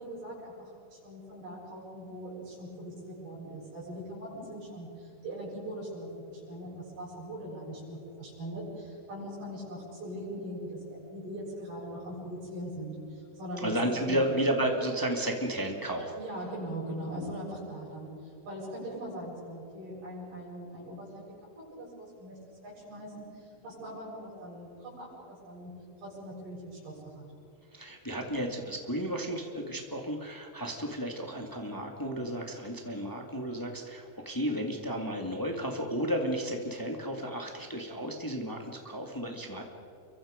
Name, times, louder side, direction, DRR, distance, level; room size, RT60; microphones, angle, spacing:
voice 1, 0.0-13.7 14.0-14.2 16.2-21.2 21.6-22.4 22.6-25.7 26.0-27.3, right 1 dB, 80° right, -8 dB, 9.5 m, -41 dB
voice 2, 13.6-16.1 27.7-39.6, right 1 dB, 25° left, 2 dB, 0.4 m, -33 dB
29.5 x 24.0 x 5.2 m, 2.6 s
omnidirectional pair, 4.6 m